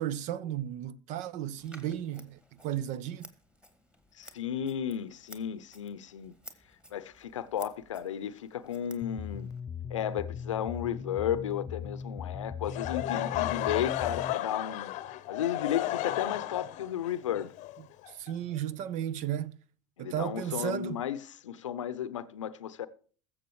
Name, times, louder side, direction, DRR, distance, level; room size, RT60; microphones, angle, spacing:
voice 1, 0.0-3.3 18.1-19.6 20.0-21.0, right 11 dB, 50° right, 0.8 m, -34 dB
Scissors, 1.6-9.6, equal, 5° right, 2.0 m, -55 dB
voice 2, 4.2-6.3 6.9-9.5 9.9-14.9 15.3-17.5 20.0-22.9, left 9 dB, 80° left, 0.7 m, -34 dB
sound 1, 9.0-14.3, left 6 dB, 25° left, 0.5 m, -39 dB
Laughter / Crowd, 12.6-18.6, left 14 dB, 50° left, 0.8 m, -33 dB
21.5 x 7.4 x 3.1 m
hypercardioid pair, 75°, 16 cm